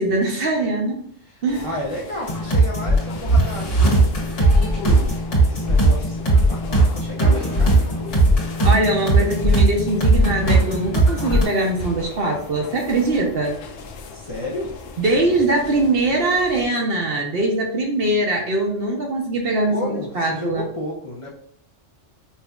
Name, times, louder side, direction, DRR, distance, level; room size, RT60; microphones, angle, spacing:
voice 1, 0.0-1.0 1.4-1.7 8.6-13.6 15.0-20.7, right 2 dB, 55° right, 1 dB, 0.8 m, -22 dB
voice 2, 1.2-8.2 14.1-14.7 19.7-21.3, left 1 dB, 35° left, -4 dB, 0.6 m, -32 dB
sound 1, 1.5-16.7, left 2 dB, 90° left, 1.0 m, -35 dB
sound 2, 2.3-11.4, right 2 dB, 65° left, 1.6 m, -18 dB
5.6 x 2.6 x 2.3 m, 0.65 s
omnidirectional pair, 1.3 m